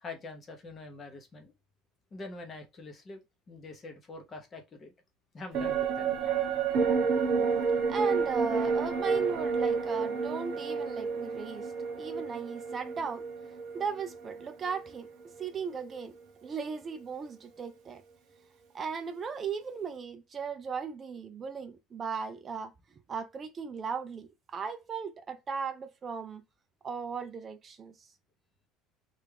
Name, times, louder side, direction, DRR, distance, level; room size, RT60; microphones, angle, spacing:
voice 1, 0.0-1.5 2.1-3.2 3.5-4.9 5.3-6.2, left 3 dB, 25° left, 0.8 m, -44 dB
sound 1, 5.5-15.1 15.4-15.5, right 5 dB, 45° right, 0.9 m, -30 dB
voice 2, 7.9-11.7 12.0-13.2 13.7-15.1 15.4-16.1 16.4-18.0 18.7-22.7 23.1-26.4 26.8-28.1, right 6 dB, 20° right, 0.4 m, -37 dB
3.3 x 2.4 x 3.3 m
cardioid pair, 175°, 0 cm